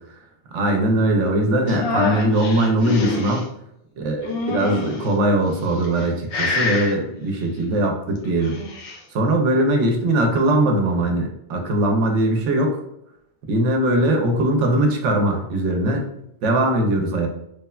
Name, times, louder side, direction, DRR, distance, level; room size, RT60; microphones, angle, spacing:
voice 1, 0.5-3.5 4.0-8.6 9.1-12.8 13.5-16.1 16.4-17.3, right 1 dB, 90° right, 2 dB, 0.9 m, -20 dB
sound 1, 1.7-3.4 4.2-5.1 5.7-6.1 6.3-6.9 8.2-9.0, left 4 dB, 85° left, 0.9 m, -26 dB
3.1 x 2.1 x 2.2 m, 0.80 s
omnidirectional pair, 1.2 m